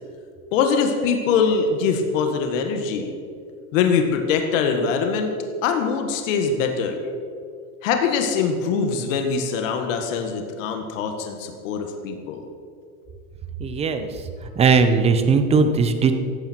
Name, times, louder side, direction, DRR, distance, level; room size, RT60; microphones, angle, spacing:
voice 1, 0.5-3.1 3.7-5.3 5.6-7.0 7.8-12.5, left 5 dB, 60° left, 4 dB, 1.9 m, -23 dB
voice 2, 13.6-14.1 14.6-16.1, right 5 dB, 15° right, 9 dB, 0.7 m, -18 dB
16.0 x 12.0 x 4.6 m, 2.3 s
supercardioid pair, 150°, 44 cm